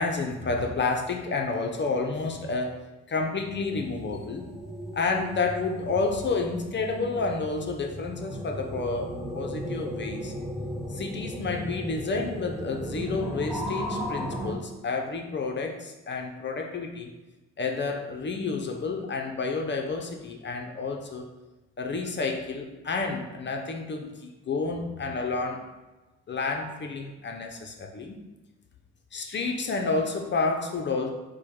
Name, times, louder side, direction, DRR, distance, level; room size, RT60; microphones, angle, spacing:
voice 1, 0.0-2.8 3.1-4.5 4.9-10.3 10.9-17.1 17.6-21.3 21.8-25.6 26.3-28.2 29.1-31.1, left 4 dB, 40° left, 3 dB, 0.5 m, -30 dB
sound 1, 3.3-14.5, equal, ahead, 0.6 m, -36 dB
4.6 x 2.1 x 4.6 m, 1.1 s
cardioid pair, 90°, 30 cm